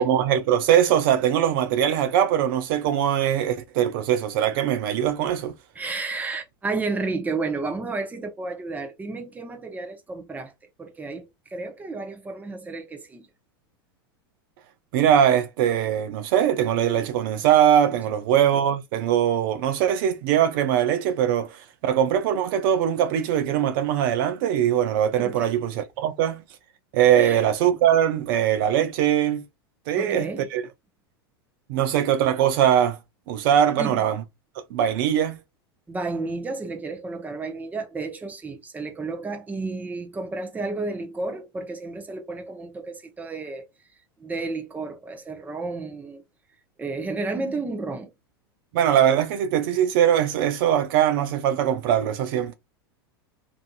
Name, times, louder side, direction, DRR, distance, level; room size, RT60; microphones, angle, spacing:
voice 1, 0.0-5.5 14.9-26.4 26.9-29.4 29.9-30.6 31.7-33.0 33.3-34.2 34.7-35.4 48.7-52.5, right 10 dB, 60° right, 0.4 m, -21 dB
voice 2, 5.7-10.5 10.8-13.3 17.9-18.0 25.2-25.5 27.2-27.4 30.0-30.5 33.8-34.0 35.9-43.7 44.2-46.2 46.8-48.1, right 3 dB, 15° right, 0.7 m, -32 dB
2.6 x 2.5 x 2.2 m
hypercardioid pair, 100°, 13 cm